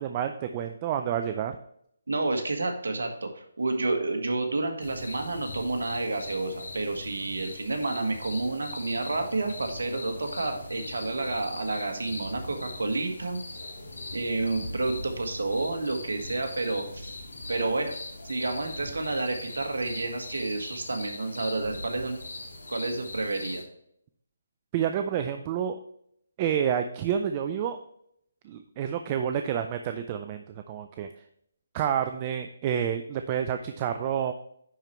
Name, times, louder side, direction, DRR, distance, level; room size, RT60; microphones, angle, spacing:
voice 1, 0.0-1.6 24.7-25.8 26.4-27.8 28.4-31.1 31.7-34.3, right 9 dB, 25° right, 7 dB, 0.4 m, -29 dB
voice 2, 2.1-13.4 14.1-17.2 17.5-18.0 18.2-22.2 22.7-23.6, right 2 dB, 75° right, 4 dB, 1.6 m, -30 dB
sound 1, 4.8-23.6, left 2 dB, 75° left, 2.1 m, -41 dB
10.0 x 4.5 x 3.2 m, 0.71 s
hypercardioid pair, 160°, 0 cm